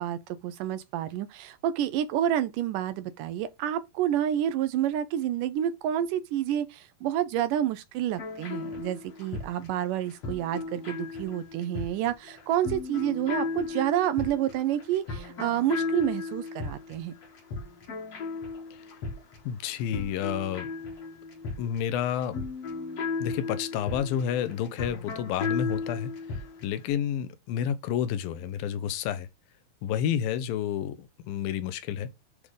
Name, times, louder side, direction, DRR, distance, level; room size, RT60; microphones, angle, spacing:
voice 1, 0.0-17.1, right 11 dB, 80° right, 2.0 m, -29 dB
sound 1, 8.1-26.7, left 4 dB, 50° left, 2.5 m, -35 dB
voice 2, 19.5-20.7 21.6-22.3 23.2-26.1 26.6-29.3 29.8-32.1, left 9 dB, 90° left, 2.5 m, -30 dB
8.4 x 3.7 x 5.0 m
omnidirectional pair, 4.1 m